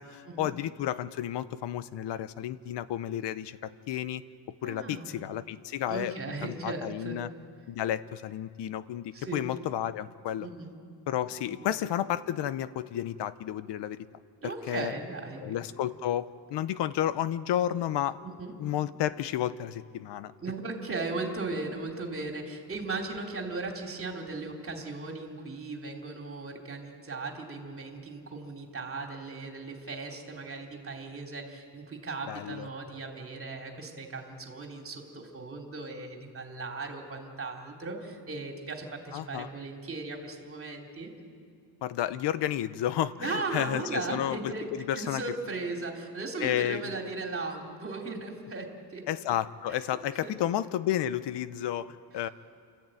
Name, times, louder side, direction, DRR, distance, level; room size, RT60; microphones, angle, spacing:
voice 1, 0.0-4.2 4.6-6.1 6.4-7.3 7.7-10.5 11.1-14.0 14.4-14.9 15.4-18.2 18.6-20.3 32.3-32.7 39.1-39.5 41.8-45.4 46.4-46.8 49.1-52.3, left 11 dB, 60° left, 15 dB, 0.9 m, -32 dB
voice 2, 4.6-5.2 5.9-7.2 9.1-9.4 10.4-10.7 11.5-11.7 14.4-15.5 18.2-18.5 20.4-41.1 43.2-49.1 50.2-50.3, right 3 dB, 30° right, 2 dB, 3.3 m, -37 dB
29.0 x 13.5 x 9.2 m, 2.3 s
cardioid pair, 130°, 46 cm